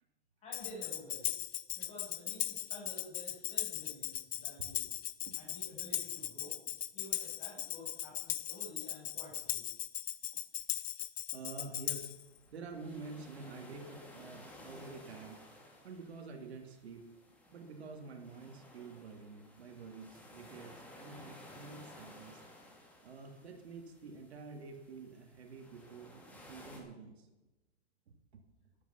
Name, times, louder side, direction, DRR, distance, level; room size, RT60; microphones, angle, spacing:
voice 1, 0.4-1.3 1.7-4.8 5.3-6.5 6.9-9.6, left 1 dB, 20° left, -2 dB, 6.2 m, -51 dB
Tambourine, 0.5-12.2, left 12 dB, 70° left, 0.8 m, -38 dB
voice 2, 11.3-12.1 12.5-15.4 15.8-17.0 17.5-22.4 23.0-27.3 28.1-28.4, right 4 dB, 80° right, 4 dB, 2.8 m, -48 dB
sound 1, 12.1-26.8, left 1 dB, 5° left, 2.2 m, -56 dB
13.0 x 10.5 x 5.9 m, 1.0 s
hypercardioid pair, 155°, 32 cm